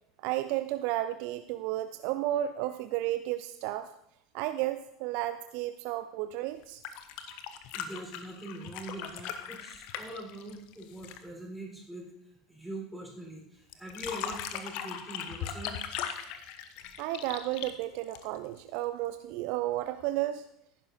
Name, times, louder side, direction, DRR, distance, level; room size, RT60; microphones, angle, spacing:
voice 1, 0.2-3.9 4.3-6.8 7.3-7.4 17.0-20.5, right 14 dB, 50° right, 11 dB, 0.5 m, -33 dB
sound 1, 6.6-11.3 13.7-18.6 20.0-20.1, left 9 dB, 50° left, 0.9 m, -39 dB
voice 2, 7.7-12.1 12.5-15.8, right 1 dB, 5° right, -1 dB, 4.4 m, -43 dB
15.0 x 11.0 x 2.8 m, 0.75 s
figure-of-eight pair, 75°, 2 cm